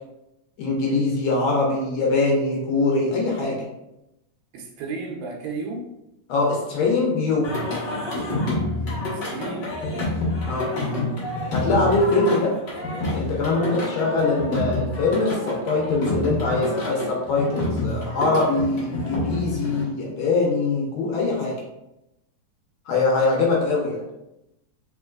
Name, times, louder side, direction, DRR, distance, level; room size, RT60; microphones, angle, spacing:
voice 1, 0.6-3.7 6.3-7.5 10.5-10.7 11.5-12.5 13.1-21.5 22.9-24.0, left 3 dB, 70° left, -2 dB, 1.9 m, -22 dB
voice 2, 4.5-5.9 9.1-10.2 13.7-13.9, right 3 dB, 75° right, -1 dB, 2.0 m, -34 dB
Singing, 7.4-19.8, left 1 dB, 50° left, 1.4 m, -28 dB
4.5 x 3.5 x 2.3 m, 0.87 s
omnidirectional pair, 3.4 m